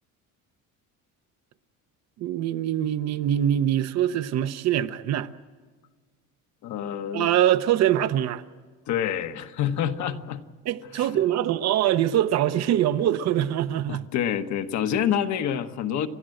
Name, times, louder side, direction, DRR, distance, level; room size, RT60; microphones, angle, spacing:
voice 1, 2.2-5.3 7.1-8.4 10.7-14.0, right 11 dB, 55° right, 0.8 m, -23 dB
voice 2, 6.6-7.3 8.9-10.4 10.9-11.1 13.9-16.1, left 9 dB, 60° left, 1.2 m, -27 dB
30.0 x 12.5 x 7.8 m
cardioid pair, 165°, 33 cm